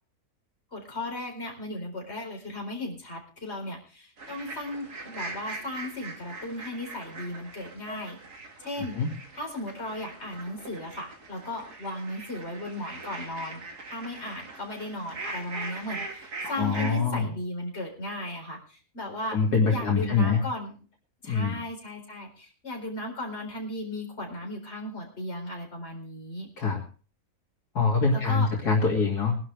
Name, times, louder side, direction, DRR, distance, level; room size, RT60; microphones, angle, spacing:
voice 1, 0.7-9.0 9.3-19.4 19.7-20.8 21.2-26.5 28.1-28.5, left 1 dB, 40° left, 0 dB, 4.6 m, -36 dB
sound 1, 4.2-17.0, right 3 dB, 75° right, 2.7 m, -41 dB
voice 2, 16.6-17.3 19.3-20.4 21.3-21.5 26.6-26.8 27.7-29.3, left 4 dB, 80° left, -1 dB, 3.2 m, -24 dB
22.0 x 11.5 x 3.4 m, 0.37 s
omnidirectional pair, 1.7 m